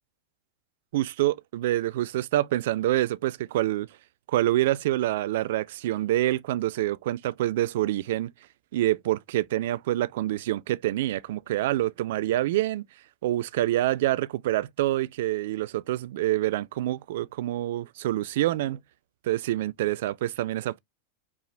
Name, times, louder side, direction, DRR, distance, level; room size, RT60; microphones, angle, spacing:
voice 1, 0.9-3.9 4.3-8.3 8.7-12.8 13.2-18.8 19.2-20.8, right 15 dB, 55° right, 0.3 m, -26 dB
4.8 x 2.4 x 3.8 m
figure-of-eight pair, 90°, 0 cm